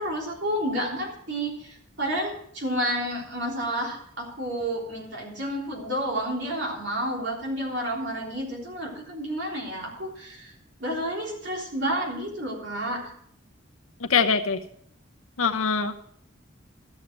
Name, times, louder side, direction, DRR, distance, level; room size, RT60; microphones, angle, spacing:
voice 1, 0.0-10.5 10.8-13.1, equal, 55° right, -2 dB, 3.4 m, -30 dB
voice 2, 14.1-14.6 15.4-15.9, left 5 dB, 85° left, 7 dB, 0.8 m, -22 dB
13.5 x 6.5 x 6.0 m, 0.67 s
head